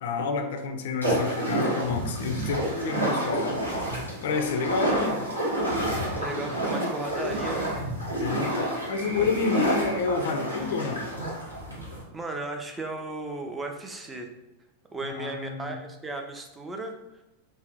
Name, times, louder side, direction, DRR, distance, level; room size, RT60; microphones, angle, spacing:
voice 1, 0.0-3.6 4.2-5.4 8.2-11.0 15.0-15.7, left 5 dB, 55° left, 6 dB, 0.3 m, -29 dB
sound 1, 1.0-12.0, right 1 dB, 80° right, 0.9 m, -29 dB
voice 2, 6.1-7.8 9.0-9.2 12.1-14.3 14.9-17.0, right 2 dB, 15° right, 3 dB, 0.4 m, -35 dB
2.6 x 2.0 x 3.4 m, 0.98 s
figure-of-eight pair, 90°, 0 cm